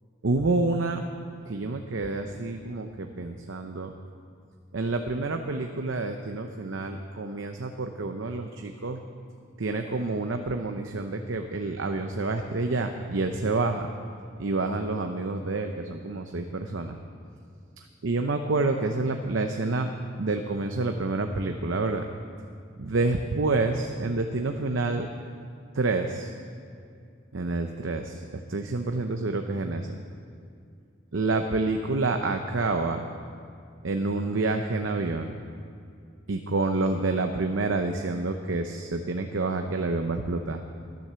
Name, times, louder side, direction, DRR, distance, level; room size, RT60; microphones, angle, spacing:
voice 1, 0.2-1.0 1.5-3.9 4.7-9.0 9.6-13.9 14.4-17.0 18.0-19.9 20.2-22.0 22.8-25.1 25.7-26.3 27.3-30.0 31.1-33.0 33.8-35.4 36.3-40.6, right 3 dB, 75° right, 5 dB, 0.7 m, -28 dB
13.0 x 10.5 x 6.9 m, 2.3 s
head